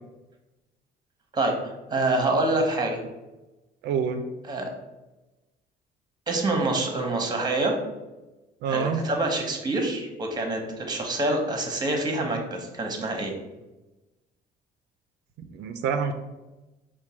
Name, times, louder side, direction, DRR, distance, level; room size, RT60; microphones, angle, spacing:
voice 1, 1.9-3.0 4.5-4.7 6.3-7.8 8.7-13.3, right 2 dB, 25° right, 3 dB, 0.9 m, -26 dB
voice 2, 3.8-4.2 8.6-9.0 15.5-16.1, right 6 dB, 85° right, 7 dB, 0.4 m, -26 dB
4.4 x 2.2 x 4.2 m, 1.1 s
cardioid pair, 110°, 17 cm